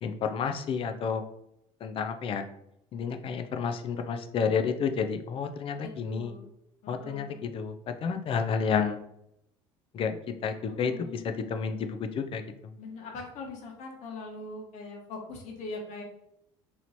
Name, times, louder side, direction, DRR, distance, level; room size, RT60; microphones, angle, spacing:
voice 1, 0.0-1.2 1.8-2.4 2.9-6.3 6.9-9.0 9.9-12.4, left 6 dB, 40° left, 7 dB, 0.5 m, -30 dB
voice 2, 5.8-6.5 6.8-7.4 10.6-11.3 12.8-16.0, left 3 dB, 60° left, 1 dB, 1.3 m, -41 dB
3.1 x 2.8 x 4.1 m, 0.77 s
supercardioid pair, 100°, 14 cm